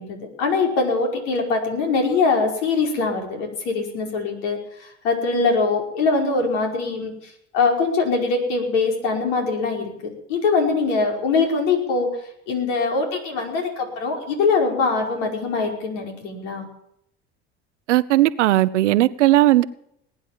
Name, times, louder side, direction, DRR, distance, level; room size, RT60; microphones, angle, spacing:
voice 1, 0.0-9.9 10.3-12.1 12.5-16.6, left 4 dB, 75° left, 5.3 m, -22 dB
voice 2, 17.9-19.6, right 15 dB, 85° right, 0.8 m, -17 dB
19.5 x 9.7 x 7.5 m
hypercardioid pair, 80°, 35 cm